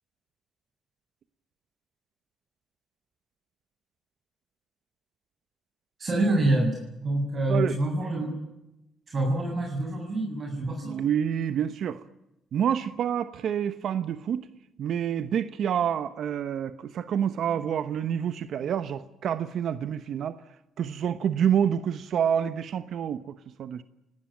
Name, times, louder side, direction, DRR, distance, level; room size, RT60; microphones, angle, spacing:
voice 1, 6.0-8.4 9.1-11.0, right 1 dB, 40° right, 1 dB, 7.4 m, -27 dB
voice 2, 10.8-12.0 12.5-14.5 14.8-20.4 20.8-23.8, right 8 dB, 65° right, 12 dB, 1.1 m, -28 dB
28.5 x 18.5 x 9.0 m, 0.91 s
cardioid pair, 90°, 0 cm